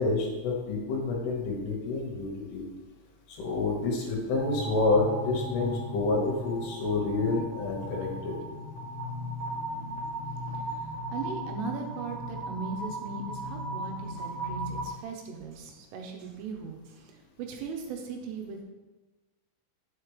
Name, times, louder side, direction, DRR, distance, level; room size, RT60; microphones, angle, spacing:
voice 1, 0.0-2.6 3.3-8.3, left 3 dB, 75° left, -2 dB, 4.1 m, -28 dB
sound 1, 4.4-14.8, right 1 dB, 35° right, 2.3 m, -36 dB
voice 2, 11.1-17.1 17.4-18.6, right 4 dB, 80° right, 2 dB, 3.4 m, -38 dB
9.4 x 7.7 x 3.3 m, 1.2 s
omnidirectional pair, 5.9 m